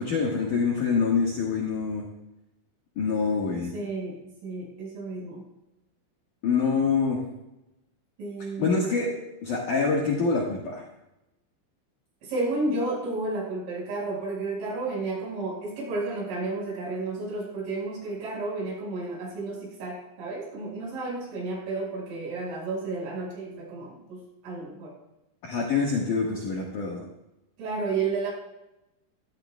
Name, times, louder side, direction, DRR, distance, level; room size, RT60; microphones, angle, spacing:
voice 1, 0.0-2.0 3.0-3.8 6.4-7.2 8.6-9.1 9.4-10.8 25.4-27.0, left 5 dB, 55° left, -3 dB, 2.6 m, -25 dB
voice 2, 3.7-4.1 4.4-5.4 8.2-8.7 12.2-24.2 24.4-24.9 27.6-28.3, right 3 dB, 85° right, -3 dB, 8.3 m, -32 dB
19.5 x 15.5 x 2.4 m, 0.92 s
omnidirectional pair, 5.5 m